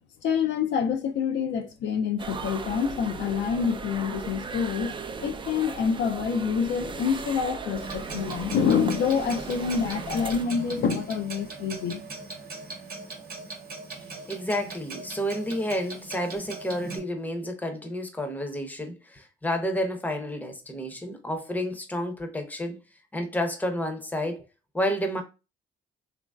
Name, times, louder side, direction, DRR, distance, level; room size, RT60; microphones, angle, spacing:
voice 1, 0.2-12.0, left 6 dB, 60° left, 0.5 m, -27 dB
sound 1, 2.2-10.4, right 5 dB, 25° right, 0.3 m, -37 dB
Clock, 7.8-17.0, right 3 dB, 45° right, 0.9 m, -40 dB
voice 2, 14.3-22.8 23.1-24.4 24.7-25.2, equal, 10° left, 0.7 m, -30 dB
2.9 x 2.5 x 2.3 m
supercardioid pair, 80°, 21 cm